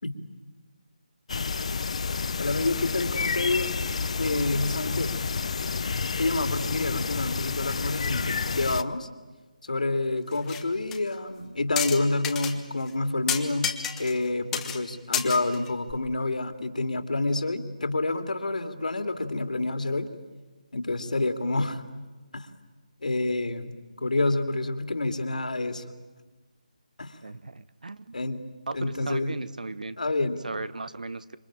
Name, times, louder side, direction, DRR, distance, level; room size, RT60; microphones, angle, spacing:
sound 1, 1.3-8.8, left 5 dB, 50° left, 0.8 m, -30 dB
voice 1, 2.4-3.8 4.2-5.1 6.2-9.1 9.6-20.1 20.7-21.8 22.3-22.5 23.0-25.8 27.0-27.2 28.1-28.5 28.7-29.4 30.0-30.4, left 2 dB, 70° left, 8 dB, 2.7 m, -28 dB
sound 2, 10.3-10.6 10.9-11.0 11.8-12.5 12.9-13.0 13.3-14.3 14.5-14.8 15.1-15.9, left 8 dB, 10° left, 1.3 m, -30 dB
voice 2, 27.2-28.1 28.7-30.0 30.4-31.4, right 3 dB, 70° right, 16 dB, 1.2 m, -36 dB
27.5 x 24.5 x 8.8 m, 1.3 s
figure-of-eight pair, 155°, 4 cm